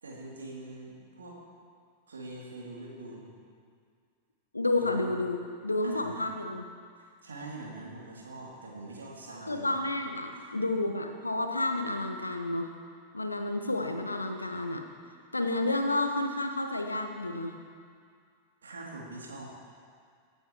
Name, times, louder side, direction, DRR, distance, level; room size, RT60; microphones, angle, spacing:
voice 1, 0.0-1.4 2.1-3.3 4.7-4.9 5.8-6.3 7.0-9.8 10.3-10.5 18.6-19.5, right 2 dB, 70° right, -3 dB, 2.9 m, -44 dB
voice 2, 4.5-6.7 9.4-12.7 13.1-14.8 15.3-17.5, left 2 dB, 80° left, 5 dB, 1.1 m, -30 dB
24.5 x 8.7 x 3.1 m, 2.2 s
figure-of-eight pair, 90°, 0 cm